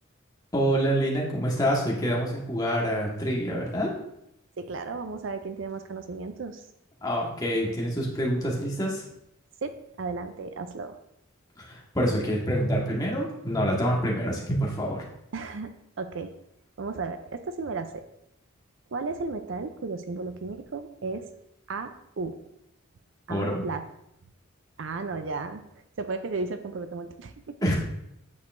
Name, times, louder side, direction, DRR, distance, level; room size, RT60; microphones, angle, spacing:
voice 1, 0.5-3.9 7.0-9.0 11.6-15.0 23.3-23.6 27.6-27.7, equal, 20° left, -4 dB, 1.5 m, -26 dB
voice 2, 4.6-6.6 9.6-11.0 15.3-15.7 16.0-16.3 16.8-18.1 18.9-21.3 21.7-22.4 23.3-23.8 24.8-25.6 26.0-27.6, right 4 dB, 65° right, 9 dB, 0.5 m, -34 dB
8.5 x 6.5 x 2.6 m, 0.79 s
head